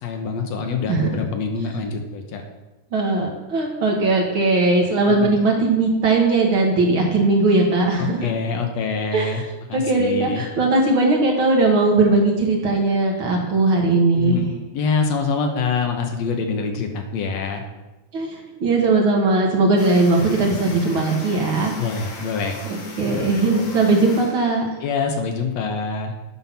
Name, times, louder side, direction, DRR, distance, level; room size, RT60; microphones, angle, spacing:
voice 1, 0.0-2.4 5.1-5.4 8.0-9.4 9.7-10.4 14.2-17.6 21.8-22.6 24.8-26.1, left 5 dB, 70° left, 4 dB, 1.7 m, -25 dB
voice 2, 2.9-8.2 9.1-9.4 9.7-14.4 18.1-21.7 22.7-24.7, right 3 dB, 50° right, 0 dB, 1.6 m, -19 dB
sound 1, 19.8-24.9, left 3 dB, 50° left, 2.2 m, -38 dB
9.5 x 5.6 x 5.9 m, 1.1 s
omnidirectional pair, 4.0 m